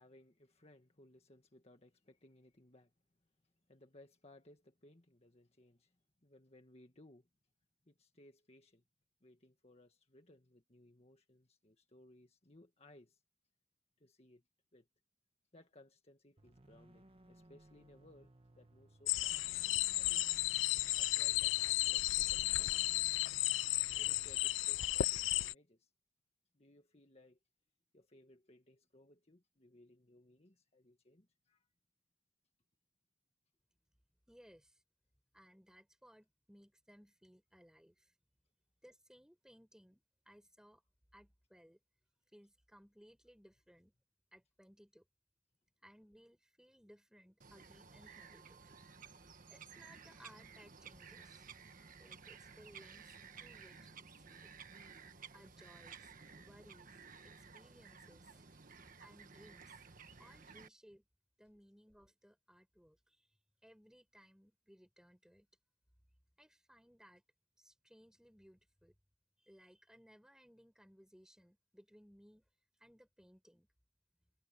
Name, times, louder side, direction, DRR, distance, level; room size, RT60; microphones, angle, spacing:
voice 1, 0.0-2.9 3.4-6.0 6.2-7.3 7.8-8.8 9.2-13.2 14.0-14.4 14.7-14.9 15.5-19.5 20.0-20.3 21.0-23.3 23.9-25.9 26.5-27.4 27.9-31.7, left 1 dB, 35° left, 1.7 m, -63 dB
sound 1, 16.4-24.3, right 1 dB, 30° right, 1.4 m, -63 dB
sound 2, 19.1-25.5, left 17 dB, 85° left, 0.3 m, -34 dB
voice 2, 34.3-34.8 35.3-38.1 38.8-40.8 41.1-41.8 42.3-43.9 44.3-45.1 45.8-48.6 49.5-51.5 52.0-54.5 55.3-58.5 59.0-59.8 60.2-61.0 61.4-65.5 66.4-67.2 67.6-68.9 69.4-72.4 72.8-73.7, equal, 5° right, 4.2 m, -63 dB
Bird vocalization bird call bird song, 47.4-60.7, right 5 dB, 45° right, 1.5 m, -55 dB
head